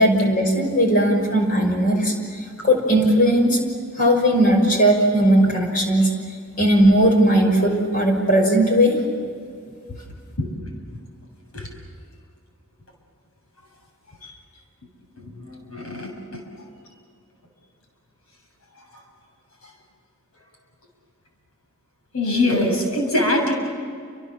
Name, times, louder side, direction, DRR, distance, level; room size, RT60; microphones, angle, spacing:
voice 1, 0.0-2.1 2.6-3.6 4.0-6.1 6.6-9.0, equal, 40° left, 2 dB, 6.0 m, -17 dB
voice 2, 15.2-16.4 22.1-23.5, left 1 dB, 80° left, 2 dB, 7.4 m, -23 dB
29.5 x 27.0 x 7.4 m, 2.2 s
head